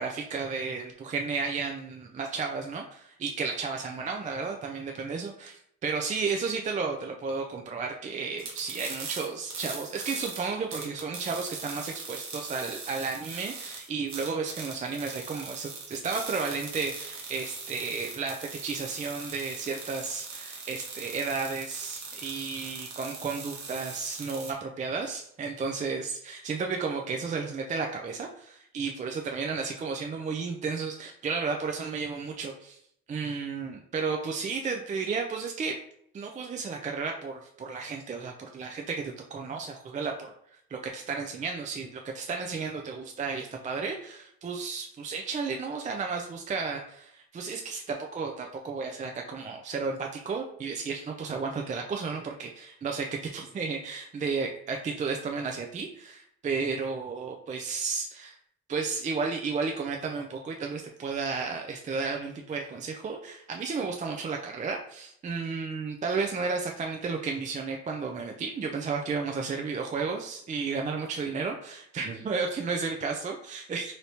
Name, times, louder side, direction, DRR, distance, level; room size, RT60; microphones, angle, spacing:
voice 1, 0.0-32.8 33.1-35.8 36.1-40.3 40.7-58.4 58.7-73.9, right 4 dB, 25° right, 2 dB, 0.3 m, -33 dB
sound 1, 8.4-24.5, right 4 dB, 65° right, 0.9 m, -41 dB
3.3 x 2.7 x 2.8 m, 0.69 s
cardioid pair, 90°, 30 cm